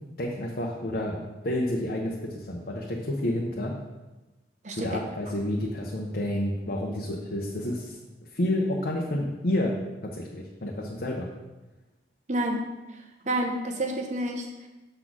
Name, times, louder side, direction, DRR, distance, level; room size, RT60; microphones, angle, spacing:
voice 1, 0.2-3.7 4.7-8.0 8.3-9.8 10.0-11.3, left 1 dB, 55° left, -2 dB, 0.9 m, -29 dB
voice 2, 4.6-5.0 12.3-12.7 13.2-14.7, right 1 dB, 45° right, 3 dB, 0.9 m, -29 dB
6.6 x 4.1 x 6.1 m, 1.1 s
head